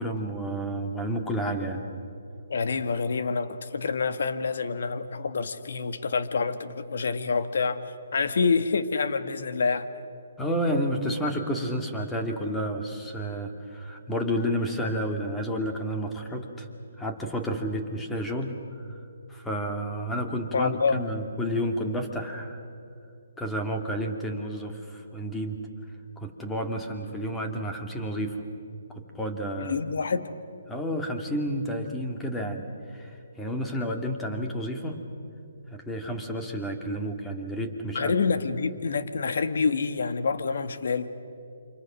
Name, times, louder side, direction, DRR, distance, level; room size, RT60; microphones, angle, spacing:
voice 1, 0.0-1.9 10.4-16.7 17.0-19.0 19.3-22.6 23.4-25.7 26.2-28.4 28.9-29.8 30.7-35.0 35.7-38.1, equal, 10° left, 3 dB, 2.3 m, -31 dB
voice 2, 2.5-7.8 8.1-9.9 20.5-21.0 29.6-30.3 37.9-41.1, left 5 dB, 65° left, 10 dB, 1.6 m, -27 dB
28.5 x 26.0 x 6.4 m, 2.6 s
hypercardioid pair, 150°, 0 cm